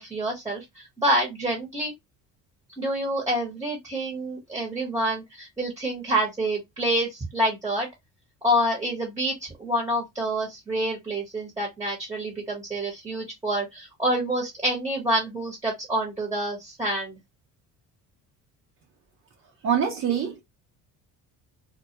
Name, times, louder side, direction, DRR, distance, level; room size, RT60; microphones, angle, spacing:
voice 1, 0.0-1.9 2.8-7.9 8.4-17.1, right 1 dB, 10° right, 0.9 m, -27 dB
voice 2, 19.6-20.4, right 8 dB, 40° right, 0.6 m, -24 dB
2.2 x 2.2 x 2.7 m
cardioid pair, 130°, 34 cm